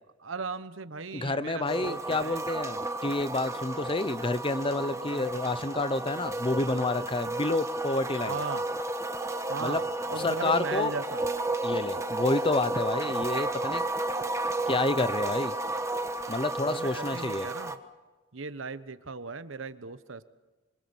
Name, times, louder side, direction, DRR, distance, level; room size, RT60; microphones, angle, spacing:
voice 1, 0.2-2.4 4.9-5.3 8.2-8.7 9.5-11.3 16.6-17.8 18.3-20.2, right 4 dB, 85° right, 13 dB, 1.1 m, -37 dB
voice 2, 1.1-8.4 9.6-9.8 10.2-10.9 11.6-13.8 14.7-15.5 16.3-17.5, left 2 dB, 25° left, 14 dB, 0.8 m, -29 dB
sound 1, 1.7-17.8, right 2 dB, 15° right, 1.3 m, -32 dB
26.0 x 26.0 x 7.2 m, 1.2 s
head